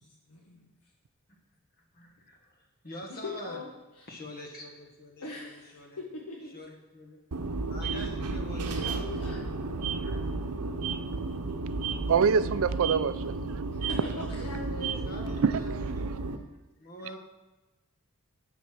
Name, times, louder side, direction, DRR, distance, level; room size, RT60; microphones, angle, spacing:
voice 1, 0.0-0.7 3.1-3.7 4.0-4.1 5.2-6.5 8.5-9.4 13.7-15.4, left 2 dB, 85° left, -2 dB, 1.3 m, -42 dB
voice 2, 1.9-3.6 4.1-6.0 6.5-7.2 7.7-9.1 10.0-10.3 14.7-15.7 16.8-17.2, equal, 45° left, 2 dB, 1.6 m, -46 dB
sound 1, 7.3-16.4, right 3 dB, 80° right, 0.8 m, -33 dB
voice 3, 12.1-13.3 15.4-15.9, right 6 dB, 65° right, 14 dB, 0.4 m, -25 dB
12.0 x 4.2 x 6.1 m, 1.1 s
head